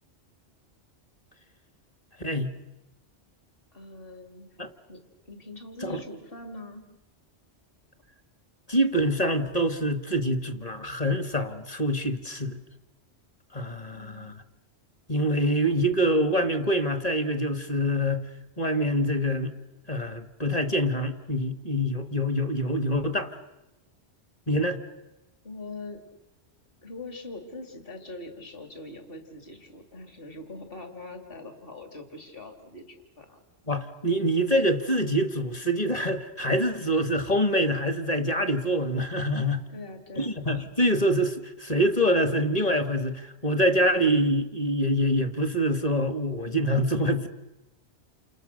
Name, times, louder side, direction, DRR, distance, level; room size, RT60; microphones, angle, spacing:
voice 1, 2.2-2.5 4.6-4.7 5.8-6.0 8.7-12.6 13.5-14.3 15.1-18.3 18.6-19.5 19.9-23.3 24.5-24.8 33.7-39.6 40.2-47.3, equal, 35° left, 9 dB, 1.7 m, -25 dB
voice 2, 3.7-4.5 4.9-6.8 13.9-14.3 25.4-26.0 26.8-33.4 39.7-40.3, left 2 dB, 55° left, 5 dB, 3.0 m, -42 dB
29.0 x 28.5 x 6.6 m, 0.97 s
omnidirectional pair, 1.2 m